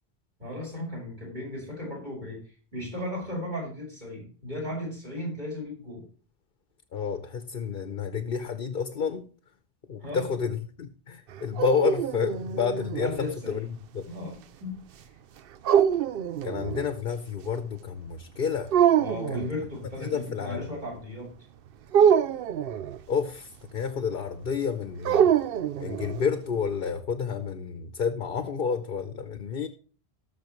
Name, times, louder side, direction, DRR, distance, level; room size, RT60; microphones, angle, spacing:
voice 1, 0.4-2.4 2.7-6.0 10.0-10.3 13.0-13.7 14.0-14.8 19.0-21.3, left 1 dB, 45° right, 5.6 m, -36 dB
voice 2, 6.9-9.3 9.9-13.7 13.9-14.1 16.4-18.7 19.3-19.4 20.0-20.7 23.1-25.4 25.8-29.7, left 6 dB, 55° left, 1.0 m, -30 dB
sound 1, 11.3-13.2 15.6-16.9 18.7-19.5 21.9-23.0 25.0-26.2, right 9 dB, 65° right, 0.8 m, -24 dB
18.5 x 6.5 x 3.1 m
omnidirectional pair, 1.1 m